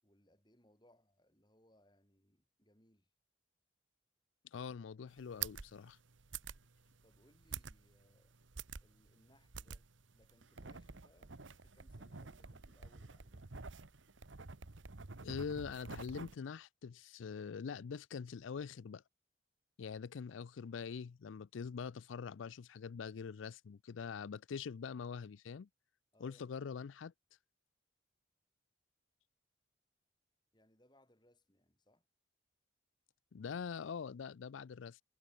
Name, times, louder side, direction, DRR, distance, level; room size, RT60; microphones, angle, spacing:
voice 1, 0.0-3.1 7.0-8.4 8.8-13.6 26.1-26.7 30.5-32.0, left 1 dB, 25° left, 7.3 m, -70 dB
voice 2, 4.4-6.0 15.2-19.0 19.8-25.7 26.2-27.1 33.3-35.0, left 6 dB, 90° left, 0.4 m, -44 dB
sound 1, 5.1-16.4, right 6 dB, 85° right, 1.2 m, -49 dB
head